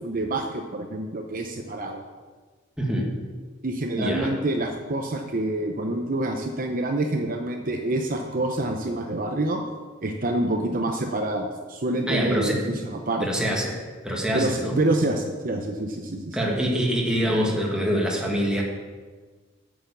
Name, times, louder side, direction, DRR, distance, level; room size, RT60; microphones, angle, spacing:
voice 1, 0.0-2.0 3.6-9.6 10.0-13.5 14.3-16.9, right 2 dB, 45° right, 3 dB, 0.8 m, -27 dB
voice 2, 2.8-3.1 4.0-4.3 12.1-12.7 13.2-14.8 16.3-18.6, equal, 5° right, -2 dB, 1.7 m, -25 dB
9.0 x 7.1 x 6.9 m, 1.4 s
head